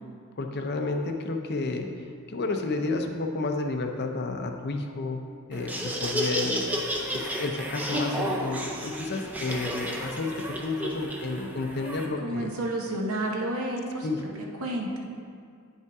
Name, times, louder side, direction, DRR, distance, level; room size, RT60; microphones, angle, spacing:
voice 1, 0.4-1.9 2.3-5.2 5.5-6.9 7.1-12.5 14.0-14.2, left 3 dB, 50° left, 4 dB, 0.6 m, -31 dB
Laughter, 5.5-12.1, equal, 5° right, 0.6 m, -32 dB
voice 2, 12.2-14.1 14.3-15.0, right 1 dB, 65° right, 0 dB, 1.0 m, -30 dB
9.1 x 5.4 x 3.5 m, 2.2 s
head